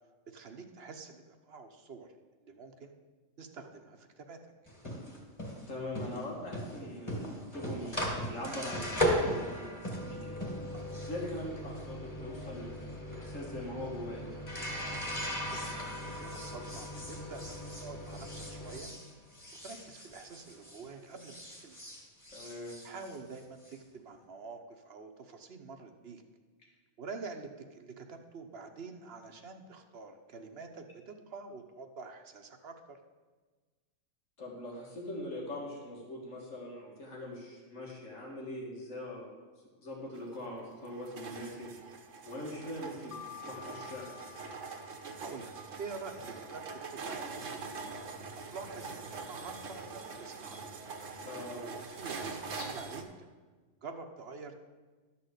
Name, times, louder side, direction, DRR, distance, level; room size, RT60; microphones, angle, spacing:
voice 1, 0.3-2.1 2.4-2.9 3.4-4.5 15.5-18.9 19.6-21.8 22.8-26.2 27.0-33.0 45.2-47.3 48.3-50.6 51.6-53.3 53.8-54.5, right 4 dB, 55° right, 6 dB, 1.0 m, -47 dB
sound 1, 4.7-20.9 21.1-23.7, equal, 25° left, 2.3 m, -38 dB
voice 2, 5.7-10.4 10.9-12.7 13.1-14.3 22.3-22.8 34.4-39.3 39.8-41.7 42.3-43.1 43.4-44.1 51.2-51.6 52.6-52.7, left 1 dB, 90° left, -2 dB, 2.2 m, -42 dB
sound 2, 40.2-53.0, right 4 dB, 80° right, 1.3 m, -43 dB
Mallet percussion, 43.1-45.9, left 11 dB, 55° left, 0.6 m, -50 dB
12.5 x 4.3 x 8.0 m, 1.3 s
omnidirectional pair, 1.3 m